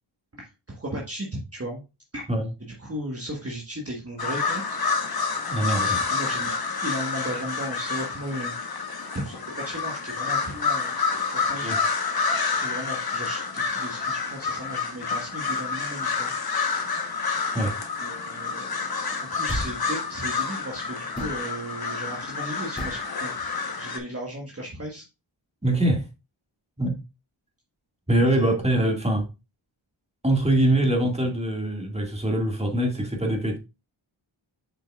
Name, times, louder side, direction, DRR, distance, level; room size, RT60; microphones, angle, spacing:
voice 1, 0.3-1.8 2.1-2.3 2.6-4.8 5.8-8.9 9.1-10.9 11.2-11.7 12.4-16.3 18.0-25.0 28.2-28.5, equal, 30° right, 1.4 m, -36 dB
sound 1, 4.2-24.0, left 5 dB, 50° left, 1.1 m, -28 dB
voice 2, 5.5-6.0 11.6-11.8 17.5-17.8 25.6-26.0 26.8-27.0 28.1-29.3 30.2-33.6, right 1 dB, 15° right, 2.0 m, -23 dB
sound 2, 19.5-19.9 21.2-21.4 22.8-23.1, equal, 15° left, 2.6 m, -32 dB
7.6 x 5.3 x 2.4 m
wide cardioid pair, 55°, 49 cm